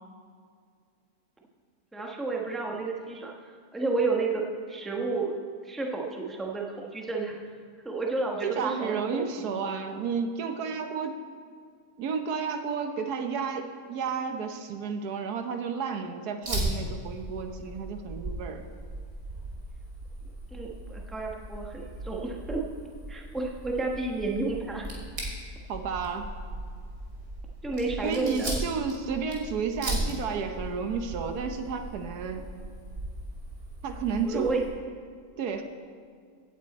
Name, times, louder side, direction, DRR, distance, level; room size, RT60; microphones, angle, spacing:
voice 1, 1.9-3.3 3.7-4.4 4.7-5.3 5.6-7.4 7.8-9.2 20.5-22.6 23.1-24.9 27.6-28.5 34.2-34.6, right 3 dB, ahead, -1 dB, 0.9 m, -31 dB
voice 2, 8.4-11.2 12.0-18.6 25.7-26.3 28.0-32.5 33.8-34.6 35.4-35.6, right 6 dB, 85° right, 6 dB, 1.4 m, -32 dB
Fire, 16.4-34.7, right 1 dB, 65° right, 2.9 m, -37 dB
16.5 x 8.1 x 4.2 m, 2.1 s
omnidirectional pair, 1.6 m